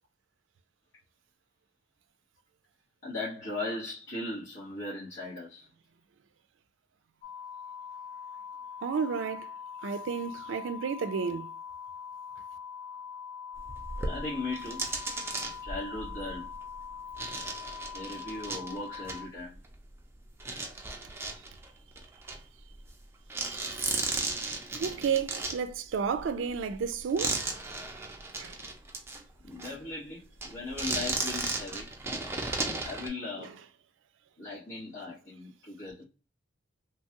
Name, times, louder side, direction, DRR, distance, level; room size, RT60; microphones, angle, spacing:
voice 1, 3.0-5.7 14.0-14.9 15.6-16.5 17.9-19.6 29.4-31.9 32.8-33.5 34.4-36.0, left 2 dB, 75° left, 1.3 m, -38 dB
sound 1, 7.2-19.3, left 7 dB, 35° left, 0.6 m, -43 dB
voice 2, 8.8-9.5 9.8-11.5 24.7-27.4 28.4-28.5 33.4-33.5, right 6 dB, 70° right, 0.4 m, -31 dB
sound 2, 13.6-20.0 20.4-23.0 23.3-29.2 29.6-29.7 30.4-33.1, right 3 dB, 15° right, 0.5 m, -35 dB
3.2 x 2.3 x 2.7 m
head